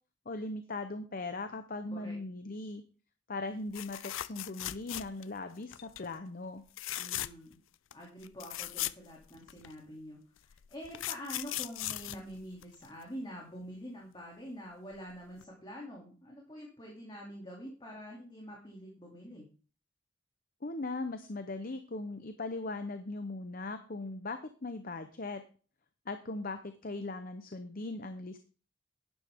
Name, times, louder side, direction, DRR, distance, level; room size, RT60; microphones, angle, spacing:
voice 1, 0.3-2.8 3.3-6.6 20.6-25.4 26.1-28.4, left 2 dB, 45° left, 9 dB, 0.8 m, -39 dB
sound 1, 3.7-5.4 5.7-6.0 6.7-7.5 7.9-8.0 8.2-9.7 10.5-13.0 14.9-15.1 15.4-15.5, left 14 dB, 75° left, 0.5 m, -38 dB
voice 2, 7.0-7.6 7.9-19.5, equal, 25° left, -2 dB, 2.6 m, -46 dB
11.5 x 9.9 x 3.6 m, 0.37 s
head